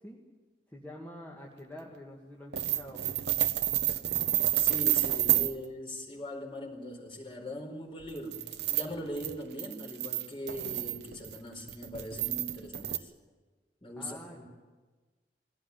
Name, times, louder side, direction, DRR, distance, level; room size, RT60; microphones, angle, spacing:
voice 1, 0.7-3.0 14.0-14.4, left 1 dB, 10° left, -3 dB, 2.0 m, -46 dB
sound 1, 2.5-5.5 8.0-13.0, right 13 dB, 65° right, 0.9 m, -29 dB
voice 2, 4.6-13.1 13.8-14.4, equal, 30° left, 0 dB, 4.5 m, -40 dB
21.5 x 16.5 x 9.6 m, 1.3 s
head